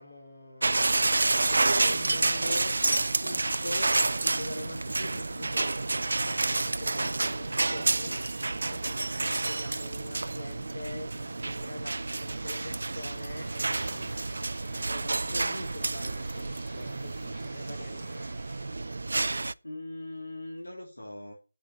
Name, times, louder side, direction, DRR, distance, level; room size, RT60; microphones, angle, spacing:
voice 1, 0.0-18.3, left 2 dB, 45° left, 3.2 m, -44 dB
sound 1, 0.6-19.5, right 3 dB, 55° right, 0.4 m, -29 dB
sound 2, 13.3-18.7, right 1 dB, 5° left, 2.1 m, -55 dB
voice 2, 19.6-21.3, left 2 dB, 70° left, 3.3 m, -40 dB
8.6 x 8.0 x 7.0 m
figure-of-eight pair, 160°, 0 cm